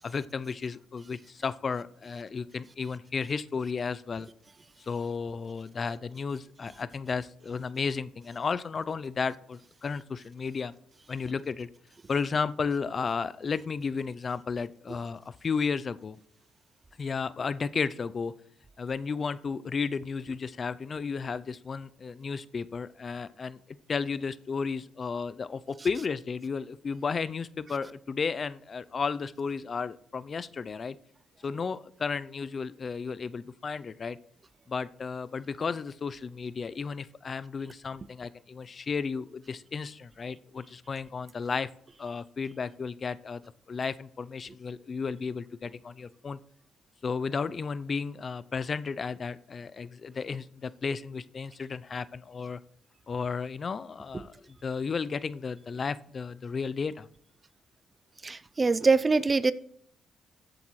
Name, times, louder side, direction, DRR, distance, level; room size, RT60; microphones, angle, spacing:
voice 1, 0.0-4.3 4.9-10.7 11.1-11.7 12.1-16.2 17.0-18.3 18.8-23.6 23.9-31.0 31.4-34.2 34.7-41.7 42.0-43.4 43.7-46.4 47.0-52.6 53.1-57.1, left 5 dB, 40° left, 16 dB, 0.4 m, -33 dB
voice 2, 58.2-59.5, right 4 dB, 30° right, 16 dB, 0.4 m, -23 dB
14.5 x 7.7 x 3.1 m, 0.66 s
cardioid pair, 90°, 0 cm